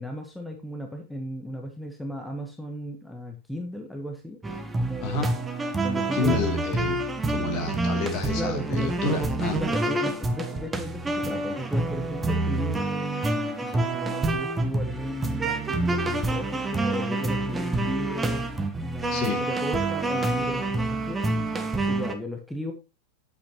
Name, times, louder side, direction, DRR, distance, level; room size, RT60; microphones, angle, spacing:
voice 1, 0.0-4.4 4.8-5.3 5.8-6.4 8.4-9.2 9.6-13.3 13.6-21.2 21.7-22.7, equal, 5° left, 4 dB, 1.4 m, -35 dB
sound 1, 4.4-22.1, right 2 dB, 15° right, 1.1 m, -27 dB
voice 2, 5.0-5.3 6.1-7.0 7.3-9.6 19.1-19.4, left 3 dB, 40° left, 4 dB, 2.8 m, -29 dB
8.5 x 8.4 x 3.0 m, 0.30 s
figure-of-eight pair, 90°, 0 cm